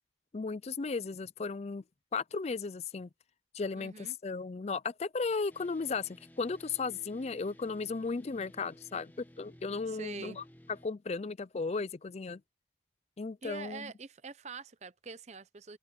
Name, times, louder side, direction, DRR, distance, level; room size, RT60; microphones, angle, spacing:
voice 1, 0.3-1.8 2.1-3.1 3.5-10.4 10.8-12.4 13.2-13.9, left 4 dB, 35° left, 0.4 m, -35 dB
voice 2, 3.7-4.2 9.9-10.4 13.4-15.8, right 4 dB, 35° right, 0.7 m, -45 dB
sound 1, 5.5-10.9, equal, 10° left, 1.2 m, -57 dB
head